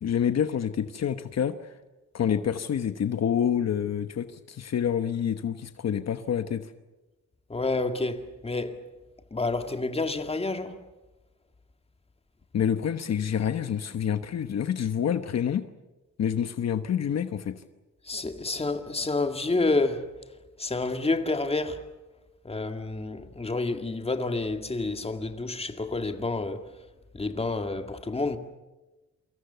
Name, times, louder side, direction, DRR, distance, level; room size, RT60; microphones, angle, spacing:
voice 1, 0.0-1.7 2.1-6.7 12.5-15.6 16.2-17.6, left 8 dB, 60° left, 1.1 m, -27 dB
voice 2, 7.5-8.9 9.3-10.8 18.0-20.1 20.6-21.8 22.4-26.7 27.1-28.4, left 3 dB, 20° left, 2.1 m, -29 dB
28.0 x 25.5 x 6.9 m
cardioid pair, 120°, 30 cm